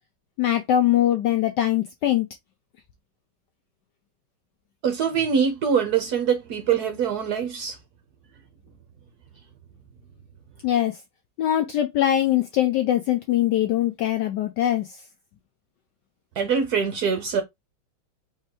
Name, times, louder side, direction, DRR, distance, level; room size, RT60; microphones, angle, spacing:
voice 1, 0.4-2.3 10.6-11.0 11.4-15.0, left 12 dB, 80° left, 0.9 m, -22 dB
voice 2, 4.8-7.8 16.4-17.4, right 7 dB, 65° right, 1.0 m, -23 dB
4.7 x 3.3 x 2.9 m
omnidirectional pair, 2.3 m